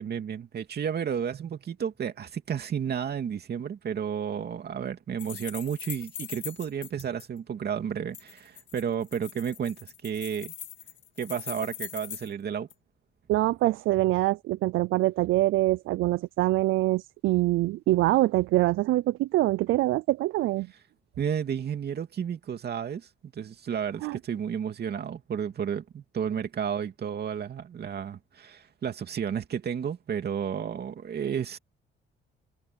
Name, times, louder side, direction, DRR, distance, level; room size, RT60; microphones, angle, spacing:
voice 1, 0.0-10.5 11.2-12.7 21.2-31.6, right 8 dB, 55° right, 2.7 m, -32 dB
sound 1, 5.2-7.3 8.1-12.3 12.7-12.8, left 10 dB, 70° left, 2.2 m, -41 dB
voice 2, 13.3-20.7 24.0-24.2, right 17 dB, 85° right, 0.5 m, -24 dB
cardioid pair, 90°, 20 cm